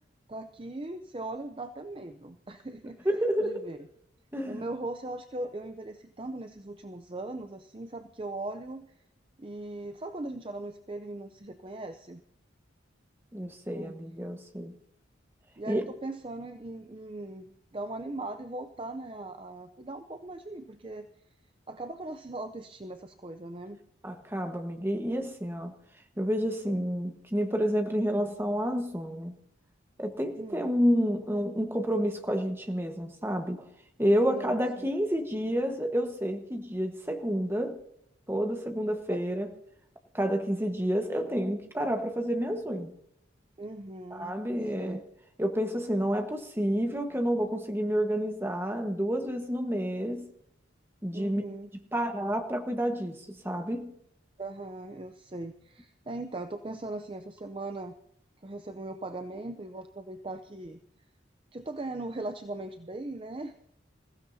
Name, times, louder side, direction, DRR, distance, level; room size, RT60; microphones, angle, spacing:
voice 1, 0.3-3.1 3.4-3.8 4.5-8.9 9.4-12.2 13.7-14.0 15.6-21.1 21.7-23.8 30.4-30.7 34.2-34.9 39.1-39.2 43.6-44.4 44.8-45.0 51.1-51.7 54.4-57.9 58.4-60.8 61.5-63.5, right 2 dB, 30° right, 0.5 m, -39 dB
voice 2, 3.0-3.7 4.3-4.6 13.3-14.7 15.7-15.8 24.0-25.7 26.2-29.4 30.0-33.7 34.0-37.8 38.3-39.5 40.1-42.9 44.1-45.0 45.4-50.3 51.0-51.4 51.9-53.9, equal, 10° right, 1.3 m, -29 dB
26.5 x 15.5 x 2.7 m
head